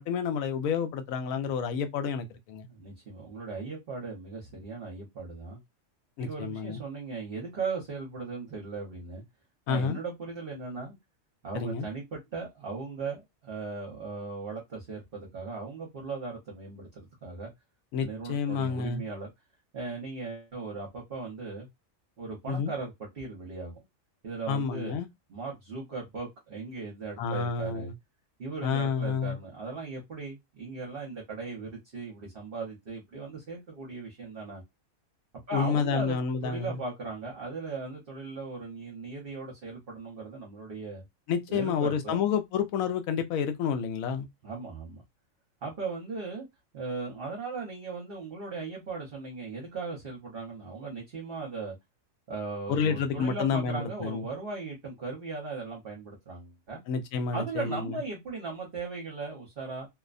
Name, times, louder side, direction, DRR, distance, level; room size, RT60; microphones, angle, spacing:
voice 1, 0.0-2.7 6.2-6.8 9.7-10.0 11.5-11.9 17.9-19.0 22.5-22.7 24.5-25.1 27.2-27.9 28.6-29.4 35.5-36.8 41.3-44.3 52.7-54.3 56.9-58.0, left 6 dB, 85° left, 1.0 m, -29 dB
voice 2, 2.7-5.6 6.2-9.2 9.7-11.0 11.4-17.5 18.0-19.3 19.7-21.7 22.2-23.7 24.2-25.0 25.3-27.9 28.4-34.6 35.5-36.2 36.4-41.0 41.5-42.2 44.4-45.0 45.6-46.5 46.7-51.7 52.3-56.8 57.3-59.9, right 4 dB, 50° right, 0.9 m, -38 dB
2.7 x 2.1 x 2.4 m
omnidirectional pair, 1.4 m